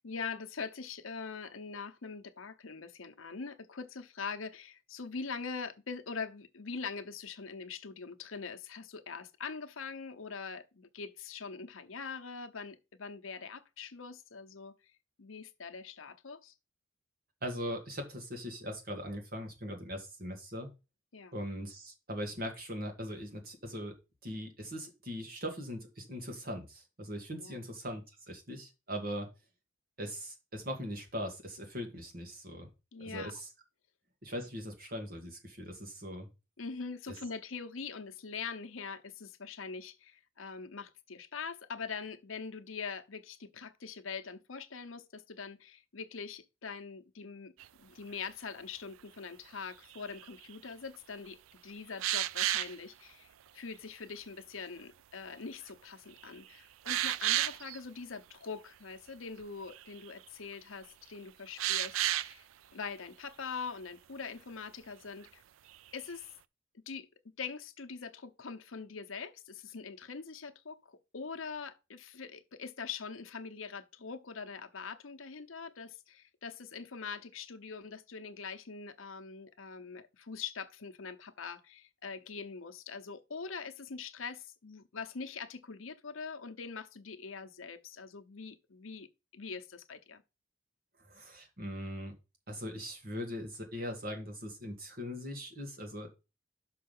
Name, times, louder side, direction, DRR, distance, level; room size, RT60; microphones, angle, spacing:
voice 1, 0.0-14.7 15.2-16.5 21.1-21.3 27.4-27.6 32.9-33.3 36.6-47.5 47.8-62.5 62.7-65.4 65.9-66.2 66.9-67.1 67.4-90.2, left 5 dB, 80° left, 0.9 m, -43 dB
voice 2, 17.4-20.7 21.3-24.0 24.2-29.3 30.0-32.7 33.0-33.5 34.2-36.3 37.1-37.2 91.0-92.2 92.5-96.1, equal, 50° right, 2.2 m, -40 dB
sound 1, 47.6-47.7 49.9-50.6 52.0-52.8 55.7-55.8 56.2-56.3 56.9-57.8 59.4-59.5 59.7-60.1 61.6-62.3 65.7-66.0, right 13 dB, 85° right, 0.3 m, -31 dB
6.1 x 5.6 x 5.4 m
head